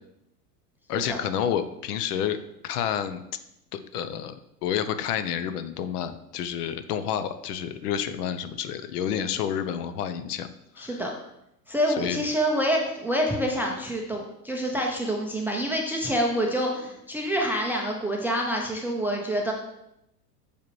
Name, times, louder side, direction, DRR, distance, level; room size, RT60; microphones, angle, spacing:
voice 1, 0.9-2.4 2.6-3.2 3.7-10.5 10.8-11.0 12.0-12.2, left 9 dB, 70° left, 10 dB, 0.7 m, -29 dB
voice 2, 10.8-11.1 11.7-19.5, equal, 5° right, 0 dB, 0.3 m, -27 dB
6.9 x 4.7 x 3.1 m, 0.82 s
hypercardioid pair, 100°, 49 cm